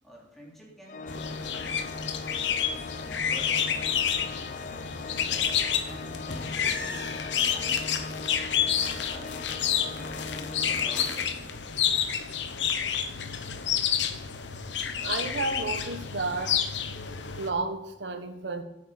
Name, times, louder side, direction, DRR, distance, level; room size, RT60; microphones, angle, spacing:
voice 1, 0.0-2.0 3.0-3.9 4.9-7.1 7.4-8.1 9.1-9.6 10.0-11.6, equal, ahead, -3 dB, 3.1 m, -49 dB
Organ, 0.9-11.7, left 4 dB, 45° left, 0.5 m, -39 dB
sound 1, 1.1-17.5, left 8 dB, 70° left, 1.0 m, -29 dB
voice 2, 15.0-16.6 17.4-18.6, right 3 dB, 70° right, 8 dB, 1.3 m, -31 dB
9.3 x 8.2 x 6.6 m, 0.95 s
head